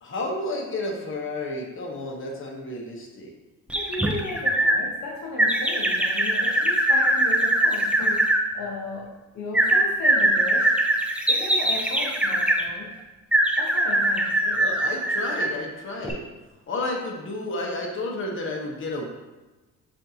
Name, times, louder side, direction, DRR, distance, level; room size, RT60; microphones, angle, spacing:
voice 1, 0.0-3.3 14.6-16.2 16.7-19.1, left 2 dB, 40° left, -1 dB, 1.0 m, -31 dB
voice 2, 3.7-10.8 11.3-12.9 13.6-14.6, left 3 dB, 65° left, -2 dB, 0.9 m, -35 dB
sound 1, 3.7-4.8 5.4-8.4 9.5-12.6 13.3-15.6 16.0-16.1, right 1 dB, 5° right, 0.4 m, -22 dB
6.6 x 2.7 x 2.8 m, 1.2 s
cardioid pair, 90°, 30 cm